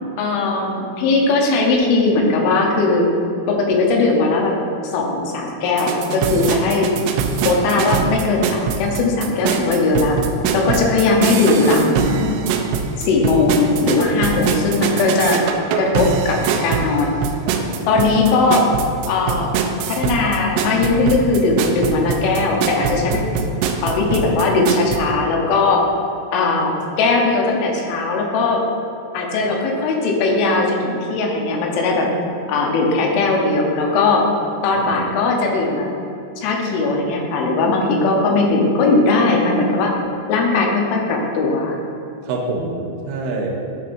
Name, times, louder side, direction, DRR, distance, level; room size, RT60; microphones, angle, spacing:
voice 1, 0.2-3.1 3.5-4.6 4.9-6.9 7.4-10.2 10.5-12.4 13.0-15.4 15.8-17.1 17.9-18.7 19.1-19.5 19.9-23.2 23.8-25.9 26.3-26.7 27.0-28.6 29.1-32.1 32.5-34.2 34.6-35.9 36.4-39.9 40.3-41.8, left 3 dB, 75° left, 0 dB, 3.3 m, -18 dB
sound 1, 5.7-25.0, right 6 dB, 90° right, 3.2 m, -23 dB
voice 2, 13.6-14.1 17.5-18.1 34.8-34.9 42.3-42.8 43.1-43.6, right 3 dB, 70° right, -1 dB, 2.6 m, -27 dB
10.5 x 6.7 x 2.7 m, 2.7 s
omnidirectional pair, 5.8 m